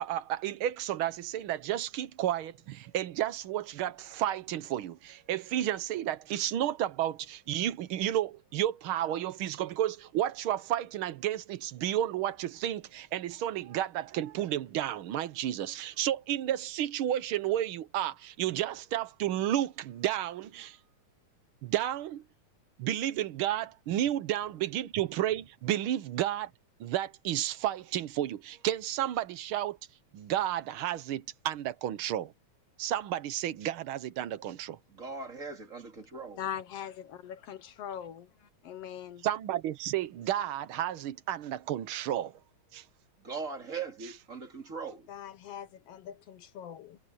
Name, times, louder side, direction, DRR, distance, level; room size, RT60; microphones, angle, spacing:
voice 1, 0.0-20.8 21.6-22.2 22.8-26.5 26.8-29.8 30.1-32.3 32.8-34.8 39.2-42.3 42.7-42.8, right 12 dB, 80° right, 1.2 m, -32 dB
voice 2, 34.9-36.5 43.2-45.1, right 5 dB, 25° right, 2.8 m, -40 dB
voice 3, 36.4-36.9 37.2-38.3 38.6-39.3 45.1-47.0, left 9 dB, 65° left, 1.7 m, -41 dB
omnidirectional pair, 3.5 m